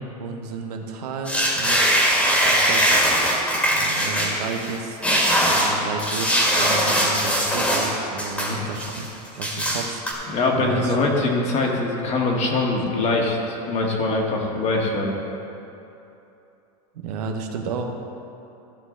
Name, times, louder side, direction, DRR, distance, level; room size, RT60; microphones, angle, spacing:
voice 1, 0.2-2.1 2.4-2.8 3.7-5.0 5.4-9.1 9.4-10.0 10.5-11.2 17.0-17.8, right 4 dB, 75° right, 3 dB, 1.1 m, -32 dB
sound 1, 1.3-4.7 5.0-7.9 8.2-9.1 9.4-10.1, equal, 5° left, 1.8 m, -21 dB
voice 2, 10.3-15.1, left 2 dB, 35° left, 0 dB, 1.6 m, -23 dB
14.0 x 6.6 x 3.9 m, 2.9 s
supercardioid pair, 135°, 20 cm